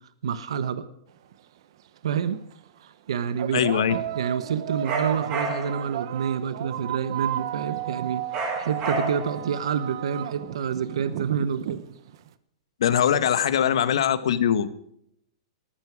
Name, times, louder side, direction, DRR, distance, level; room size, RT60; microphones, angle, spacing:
voice 1, 0.2-0.8 2.0-2.4 2.8-8.3 8.6-11.8, right 7 dB, 80° right, 11 dB, 1.4 m, -28 dB
sound 1, 1.3-1.4 2.3-2.5 3.4-12.3, right 11 dB, 60° right, 1.1 m, -33 dB
voice 2, 3.5-3.9 12.8-14.7, left 9 dB, 75° left, 12 dB, 1.6 m, -22 dB
sound 2, 4.8-5.9 8.3-9.4, right 2 dB, 30° right, 5.4 m, -30 dB
19.5 x 15.0 x 5.0 m, 0.74 s
hypercardioid pair, 150°, 3 cm